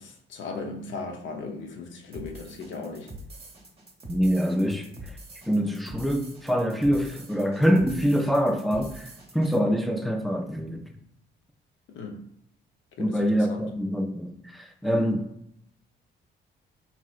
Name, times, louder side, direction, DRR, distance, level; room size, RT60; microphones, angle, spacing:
voice 1, 0.0-3.1 11.9-12.2 13.0-13.7, left 3 dB, 70° left, 3 dB, 0.6 m, -37 dB
sound 1, 2.1-9.6, right 1 dB, 30° right, 0.8 m, -44 dB
voice 2, 4.1-4.9 5.5-9.1 9.3-10.8 13.0-15.3, equal, ahead, 4 dB, 0.4 m, -25 dB
3.0 x 2.7 x 2.4 m, 0.76 s
cardioid pair, 90°, 20 cm